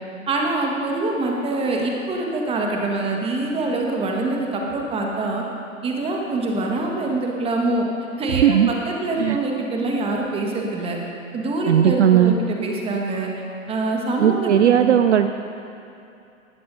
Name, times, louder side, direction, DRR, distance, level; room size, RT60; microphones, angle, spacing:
voice 1, 0.3-5.4 5.8-7.9 8.2-11.0 11.3-13.3 13.7-15.0, right 2 dB, 15° right, 0 dB, 1.6 m, -24 dB
voice 2, 11.7-12.3 14.2-15.3, right 10 dB, 60° right, 9 dB, 0.6 m, -16 dB
19.5 x 14.0 x 2.7 m, 2.7 s
figure-of-eight pair, 110°, 40 cm